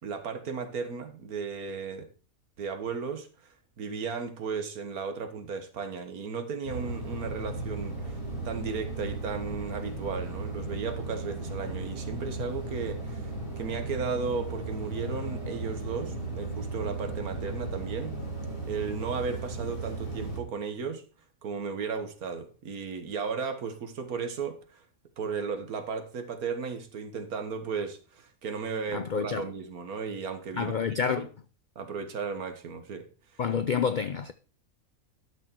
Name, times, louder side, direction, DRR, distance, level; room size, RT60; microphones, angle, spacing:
voice 1, 0.0-2.1 2.6-3.3 3.8-8.2 8.4-13.3 13.6-18.2 18.6-21.0 21.4-24.8 25.2-30.8 31.1-31.3 31.7-33.0, right 5 dB, 85° right, 1.8 m, -35 dB
sound 1, 6.6-20.4, right 2 dB, 40° left, 5.0 m, -36 dB
voice 2, 28.9-29.4 30.6-31.3 33.4-34.3, left 6 dB, 80° left, 0.4 m, -28 dB
11.5 x 6.3 x 4.5 m
omnidirectional pair, 1.5 m